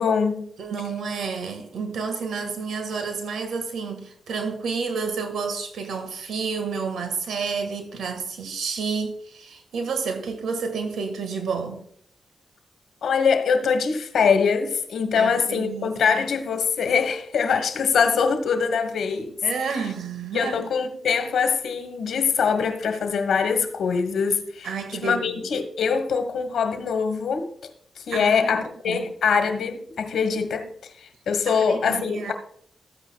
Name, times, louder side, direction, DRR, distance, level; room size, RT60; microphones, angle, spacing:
voice 1, 0.0-0.5 13.0-19.3 20.3-24.7 25.0-27.5 28.0-30.7 31.0-32.3, left 6 dB, 85° left, 1.3 m, -23 dB
voice 2, 0.6-11.8 15.1-16.0 19.4-20.7 24.6-25.4 28.1-29.1 31.5-32.3, right 5 dB, 85° right, 1.7 m, -30 dB
13.5 x 9.0 x 2.3 m
cardioid pair, 60°, 0 cm